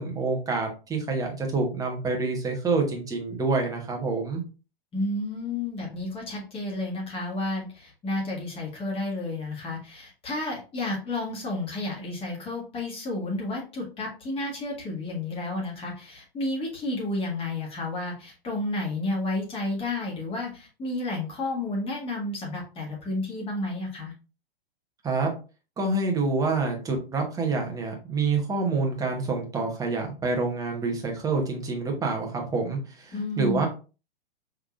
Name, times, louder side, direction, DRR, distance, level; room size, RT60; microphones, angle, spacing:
voice 1, 0.0-4.4 25.0-25.3 25.8-33.7, right 3 dB, 10° right, 1 dB, 1.1 m, -27 dB
voice 2, 4.9-24.1 33.1-33.7, left 2 dB, 20° left, -2 dB, 1.8 m, -31 dB
5.3 x 3.5 x 2.4 m, 0.33 s
figure-of-eight pair, 110°, 30 cm